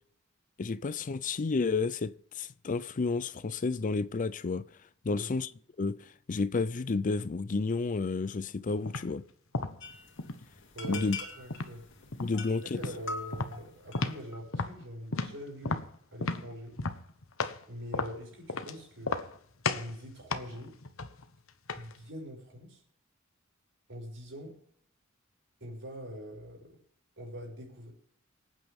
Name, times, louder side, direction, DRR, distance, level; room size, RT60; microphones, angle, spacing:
voice 1, 0.6-4.6 5.0-5.5 5.8-9.2 10.9-11.2 12.2-12.8, left 4 dB, 40° left, 0.5 m, -31 dB
sound 1, 8.8-9.1 9.5-10.4 10.8-11.8 12.1-12.4 12.7-13.0 13.3-14.3 14.5-17.6 17.9-18.7 19.0-19.4 19.6-19.9 20.3-22.0, left 3 dB, 90° left, 1.2 m, -34 dB
sound 2, 9.8-14.4, left 3 dB, 65° left, 2.6 m, -43 dB
voice 2, 10.7-11.9 12.3-16.8 17.7-19.2 19.7-20.8 21.7-22.8 23.9-24.6 25.6-26.8 27.2-27.9, equal, 65° right, 5.8 m, -44 dB
25.0 x 9.1 x 3.6 m
head